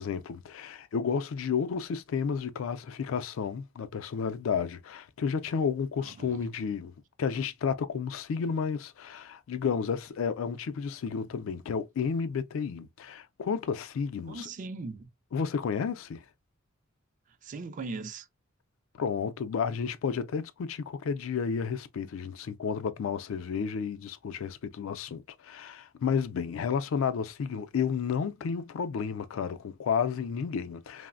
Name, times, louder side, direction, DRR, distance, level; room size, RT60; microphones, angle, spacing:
voice 1, 0.0-14.5 15.3-16.2 19.0-31.1, left 6 dB, 80° left, 0.4 m, -32 dB
voice 2, 6.0-6.5 14.3-15.1 17.3-18.3, right 3 dB, 40° right, 0.3 m, -40 dB
3.1 x 2.0 x 2.4 m
head